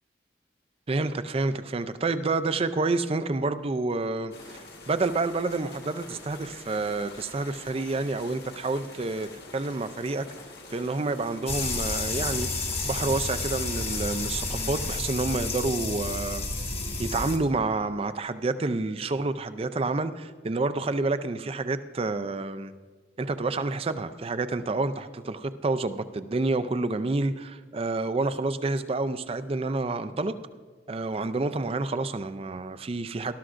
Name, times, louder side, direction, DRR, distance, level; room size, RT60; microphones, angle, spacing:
voice 1, 0.9-4.6 4.9-9.3 9.5-10.2 10.7-12.5 12.8-16.7 17.0-22.7 23.2-30.3 30.9-33.3, right 3 dB, 30° right, 11 dB, 0.4 m, -29 dB
sound 1, 4.3-15.0, left 3 dB, 60° left, 1.8 m, -46 dB
sound 2, 11.5-17.4, left 3 dB, 35° left, 1.4 m, -31 dB
18.5 x 12.5 x 2.5 m, 1.4 s
head